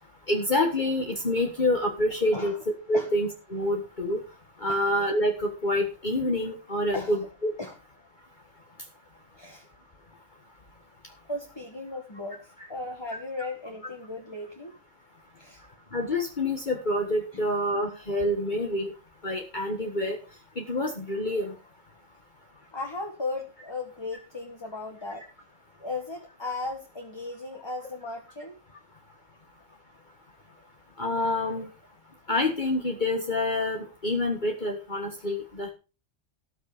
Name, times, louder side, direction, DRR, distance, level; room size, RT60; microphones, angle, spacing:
voice 1, 0.3-2.5 2.9-4.2 4.6-7.2 7.4-7.5 15.9-18.9 19.2-20.2 20.6-21.5 31.0-31.7 32.3-35.7, left 1 dB, 35° left, 2 dB, 1.8 m, -27 dB
voice 2, 9.3-9.7 11.3-14.8 15.4-15.6 22.7-25.3 25.8-28.6, left 2 dB, 20° left, 3 dB, 1.8 m, -36 dB
18.0 x 6.5 x 5.1 m, 0.32 s
omnidirectional pair, 1.3 m